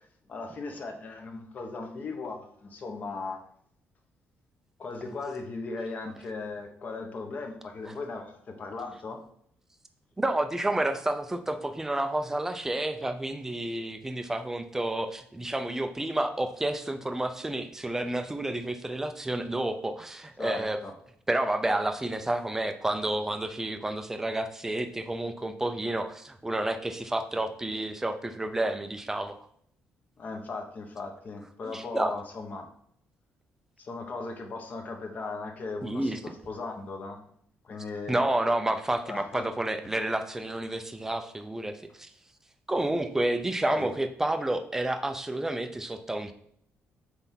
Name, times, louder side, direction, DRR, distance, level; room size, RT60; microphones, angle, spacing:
voice 1, 0.3-3.4 4.8-9.2 20.4-21.0 30.2-32.7 33.8-37.2 37.6-38.2 39.1-39.5 43.7-43.9, left 3 dB, 35° left, 4 dB, 1.2 m, -37 dB
voice 2, 10.2-20.8 21.3-29.4 31.6-32.2 35.8-36.2 38.1-42.1 42.7-46.3, right 1 dB, 10° right, 8 dB, 0.6 m, -30 dB
8.0 x 3.4 x 5.8 m, 0.66 s
cardioid pair, 165°, 5 cm